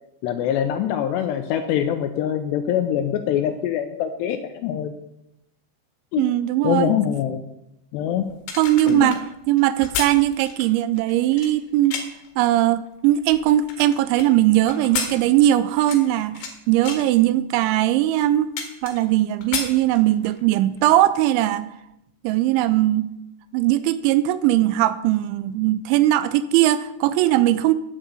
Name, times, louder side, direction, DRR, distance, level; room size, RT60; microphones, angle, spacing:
voice 1, 0.2-4.9 6.1-6.2 6.6-7.4 7.9-8.3 8.9-9.1, left 10 dB, 80° left, 8 dB, 2.5 m, -24 dB
voice 2, 6.2-6.9 8.6-9.2 9.5-12.0 12.4-18.5 18.8-21.7 22.2-23.1 23.5-27.7, right 14 dB, 85° right, 14 dB, 2.8 m, -19 dB
sound 1, 8.3-12.3 12.9-14.3 14.7-16.5 16.8-17.1 17.7-17.8 18.1-19.2 19.4-20.4 20.8-20.9, left 6 dB, 65° left, 3.4 m, -32 dB
9.9 x 7.6 x 8.2 m, 0.87 s
omnidirectional pair, 5.5 m